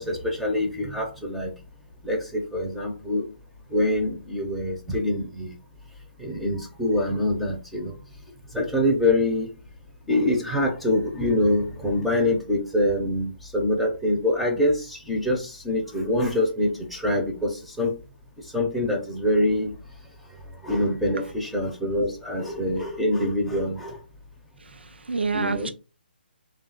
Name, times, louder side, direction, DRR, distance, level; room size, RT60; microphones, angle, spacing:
voice 1, 0.0-1.5 2.0-3.2 3.7-5.6 6.2-7.9 8.5-9.5 10.1-17.9 18.4-19.8 20.3-24.0 25.3-25.7, left 1 dB, ahead, 0.6 m, -25 dB
voice 2, 24.6-25.7, right 4 dB, 90° right, 0.5 m, -28 dB
3.5 x 2.4 x 3.9 m
hypercardioid pair, 150°, 6 cm